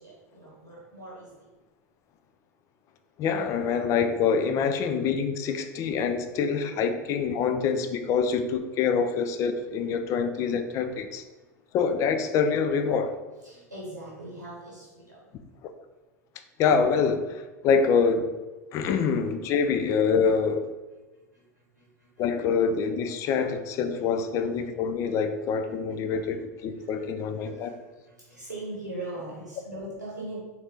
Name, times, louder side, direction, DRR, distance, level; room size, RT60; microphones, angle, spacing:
voice 1, 0.0-1.5 11.3-11.4 13.4-15.3 18.7-18.9 21.1-22.3 23.9-24.0 24.4-24.5 25.9-26.0 26.7-30.4, right 1 dB, 90° right, -6 dB, 1.2 m, -41 dB
voice 2, 3.2-11.2 11.7-13.1 15.6-15.7 16.6-18.3 18.7-20.7 22.2-27.7, left 6 dB, 35° left, 9 dB, 0.4 m, -25 dB
4.1 x 3.7 x 3.4 m, 1.2 s
figure-of-eight pair, 85°, 9 cm